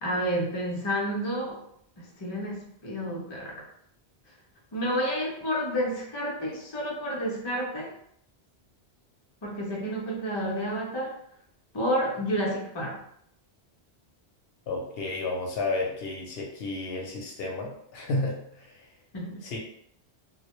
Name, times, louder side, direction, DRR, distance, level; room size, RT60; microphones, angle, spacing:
voice 1, 0.0-1.6 2.0-3.7 4.7-7.9 9.4-11.2 11.7-13.0 19.1-19.4, equal, 40° left, -2 dB, 0.4 m, -30 dB
voice 2, 14.7-18.9 19.4-19.6, left 2 dB, 70° left, 0 dB, 0.7 m, -32 dB
2.1 x 2.1 x 2.9 m, 0.70 s
omnidirectional pair, 1.1 m